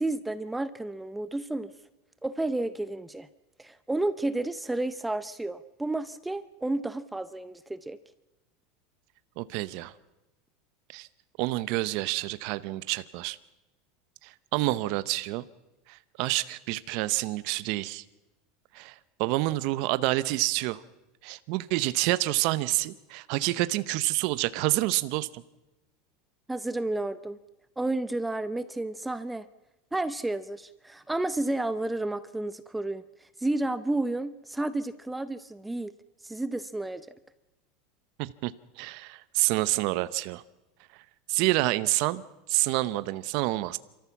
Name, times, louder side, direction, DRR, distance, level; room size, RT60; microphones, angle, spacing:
voice 1, 0.0-1.7 2.2-3.3 3.6-8.0 26.5-27.4 27.8-29.5 29.9-33.0 33.4-35.9 36.2-37.1, right 2 dB, 5° right, 13 dB, 0.6 m, -31 dB
voice 2, 9.4-9.9 10.9-11.1 11.4-13.4 14.2-15.4 15.9-18.0 18.7-20.8 21.2-25.4 38.2-38.5 38.8-40.4 41.3-42.2 42.5-43.8, right 19 dB, 60° right, 15 dB, 0.8 m, -28 dB
27.5 x 14.0 x 7.1 m, 1.0 s
supercardioid pair, 140°, 0 cm